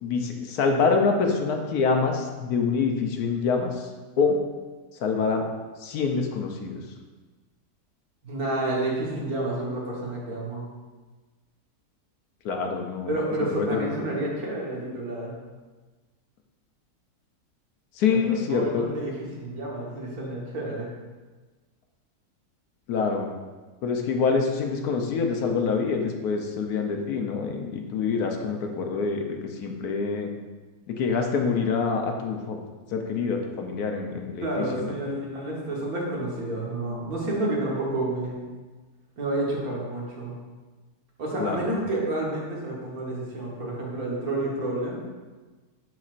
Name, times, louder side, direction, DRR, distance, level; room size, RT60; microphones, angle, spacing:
voice 1, 0.0-3.9 4.2-4.4 5.0-5.4 5.8-6.8 12.4-13.1 13.4-13.9 18.0-18.9 22.9-23.3 23.8-30.3 31.0-32.6 32.9-34.9 41.4-41.6, left 5 dB, 75° left, 3 dB, 1.2 m, -26 dB
voice 2, 8.2-10.6 13.1-15.3 18.1-18.2 18.5-20.9 34.4-38.4 39.2-40.3 41.2-45.1, right 2 dB, 65° right, -4 dB, 1.8 m, -29 dB
10.5 x 4.2 x 2.5 m, 1.3 s
omnidirectional pair, 1.7 m